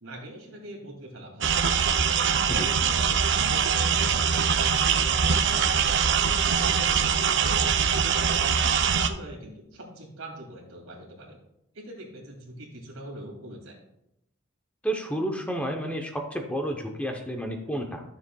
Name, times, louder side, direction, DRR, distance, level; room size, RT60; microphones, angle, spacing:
voice 1, 0.0-1.5 2.1-4.2 4.5-7.7 8.1-11.4 11.7-13.8, right 1 dB, 75° right, 0 dB, 2.5 m, -42 dB
sound 1, 1.4-9.1, right 6 dB, 55° right, 0.5 m, -23 dB
voice 2, 14.8-18.0, right 1 dB, 5° left, 3 dB, 0.7 m, -30 dB
13.0 x 7.0 x 2.3 m, 0.81 s
head